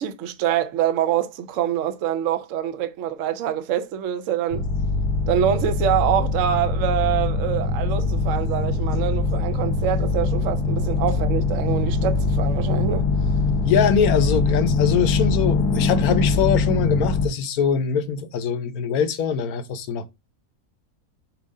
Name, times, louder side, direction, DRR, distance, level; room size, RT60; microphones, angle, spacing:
voice 1, 0.0-4.6 5.3-13.0, right 10 dB, 65° right, 0.9 m, -25 dB
sound 1, 4.5-17.3, left 3 dB, 90° left, 1.5 m, -22 dB
voice 2, 13.6-20.1, left 7 dB, 70° left, 1.2 m, -23 dB
7.2 x 2.5 x 5.3 m
omnidirectional pair, 1.7 m